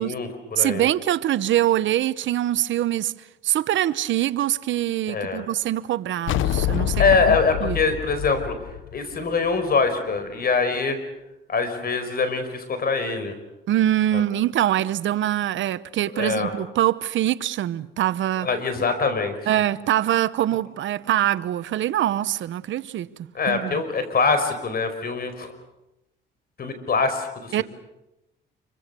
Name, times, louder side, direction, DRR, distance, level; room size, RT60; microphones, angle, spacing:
voice 1, 0.0-0.8 5.1-5.4 7.0-11.0 11.5-13.3 14.1-14.2 16.1-16.5 18.4-19.5 23.3-25.5 26.6-27.6, left 4 dB, 50° left, 4.9 m, -24 dB
voice 2, 0.6-3.1 3.4-7.8 13.7-18.5 19.5-23.8 27.5-27.6, right 12 dB, 75° right, 0.9 m, -24 dB
sound 1, 6.3-9.7, left 13 dB, 80° left, 0.8 m, -26 dB
27.0 x 24.0 x 6.9 m
cardioid pair, 90°, 20 cm